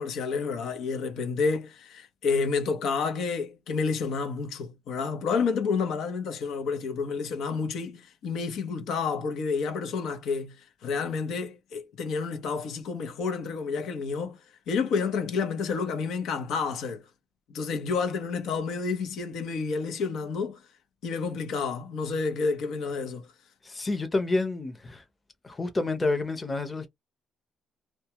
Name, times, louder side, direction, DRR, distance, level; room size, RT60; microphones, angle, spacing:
voice 1, 0.0-17.1 17.5-20.6 21.0-23.3, left 5 dB, 80° left, 0.8 m, -30 dB
voice 2, 23.6-25.0 25.4-26.9, left 3 dB, 25° left, 0.8 m, -29 dB
2.2 x 2.2 x 2.8 m
cardioid pair, 90°, 0 cm